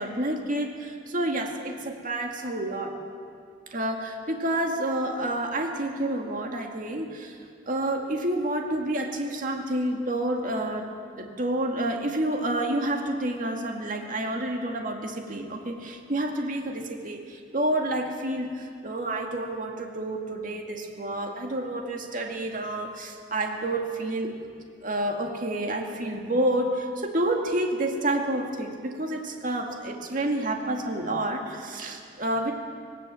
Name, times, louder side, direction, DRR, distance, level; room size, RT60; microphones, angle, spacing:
voice 1, 0.0-3.0 3.7-10.9 11.2-24.3 24.8-32.5, right 1 dB, 45° right, 3 dB, 2.1 m, -29 dB
18.5 x 18.0 x 7.6 m, 2.2 s
head